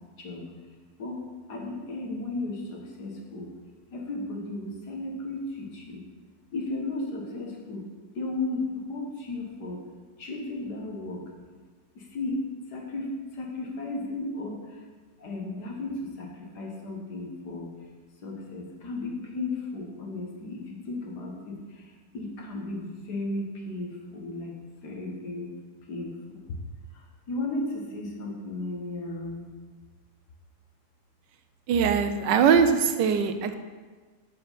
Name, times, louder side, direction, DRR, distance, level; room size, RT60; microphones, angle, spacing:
voice 1, 1.5-3.5 3.9-6.0 6.5-7.8 8.2-8.6 8.9-9.8 10.2-11.2 12.1-12.4 12.7-13.1 13.4-14.6 15.2-15.9 16.2-16.3 16.6-17.7 18.2-21.6 22.1-24.5 24.8-25.5 25.9-26.1 27.3-29.4, left 2 dB, 70° left, 0 dB, 2.0 m, -34 dB
voice 2, 31.7-33.6, right 6 dB, 85° right, 9 dB, 1.3 m, -21 dB
7.2 x 6.2 x 5.7 m, 1.4 s
omnidirectional pair, 1.9 m